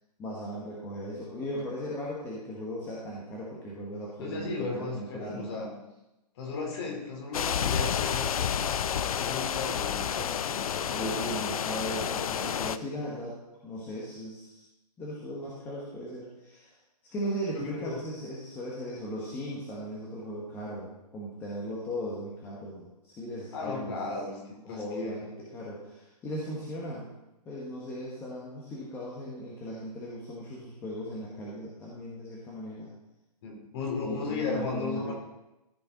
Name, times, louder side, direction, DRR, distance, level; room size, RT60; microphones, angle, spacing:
voice 1, 0.2-5.5 10.9-14.6 15.0-16.7 17.1-24.0 24.6-27.1 27.4-32.9 34.0-35.1, equal, 10° left, -6 dB, 1.2 m, -37 dB
voice 2, 4.2-5.7 6.4-11.1 17.5-18.0 23.5-25.3 33.4-35.1, left 3 dB, 35° left, 1 dB, 2.6 m, -35 dB
sound 1, 7.3-12.8, left 8 dB, 55° left, 0.5 m, -30 dB
14.5 x 5.7 x 4.0 m, 0.95 s
hypercardioid pair, 160°, 21 cm